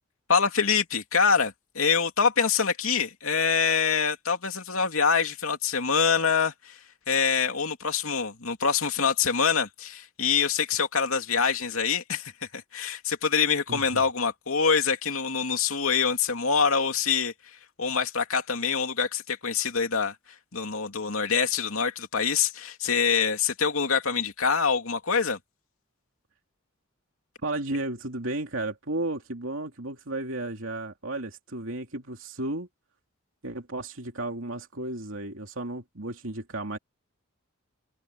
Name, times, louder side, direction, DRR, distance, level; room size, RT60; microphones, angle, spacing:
voice 1, 0.3-6.8 7.1-17.3 17.8-20.2 20.5-25.4, left 6 dB, 90° left, 2.8 m, -25 dB
voice 2, 13.7-14.0 27.4-32.7 33.4-36.8, right 2 dB, 70° right, 2.8 m, -33 dB
head